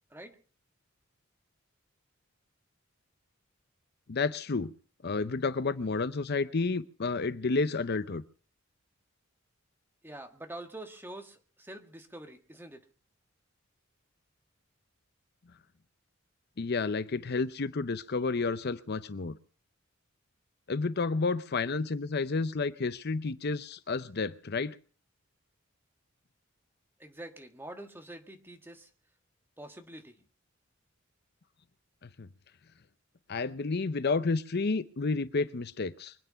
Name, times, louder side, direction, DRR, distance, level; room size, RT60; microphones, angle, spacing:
voice 1, 4.1-4.7 5.0-8.2 16.6-19.4 20.7-24.8 32.0-32.3 33.3-36.1, left 4 dB, 50° left, 14 dB, 0.7 m, -31 dB
voice 2, 10.0-12.8 27.0-28.9 29.6-30.2, right 1 dB, 10° right, 5 dB, 1.6 m, -46 dB
24.5 x 9.3 x 5.7 m, 0.41 s
head